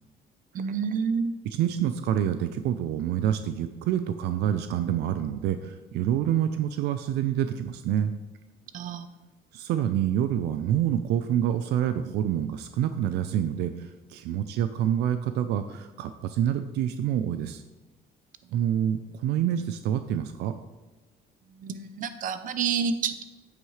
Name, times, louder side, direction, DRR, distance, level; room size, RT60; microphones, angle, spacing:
voice 1, 0.5-1.3 8.7-9.1 21.6-23.2, right 6 dB, 50° right, 11 dB, 0.8 m, -28 dB
voice 2, 1.4-8.1 9.5-17.6 18.5-20.5, right 10 dB, 80° right, 10 dB, 0.5 m, -27 dB
9.2 x 8.7 x 3.2 m, 1.1 s
cardioid pair, 110°, 17 cm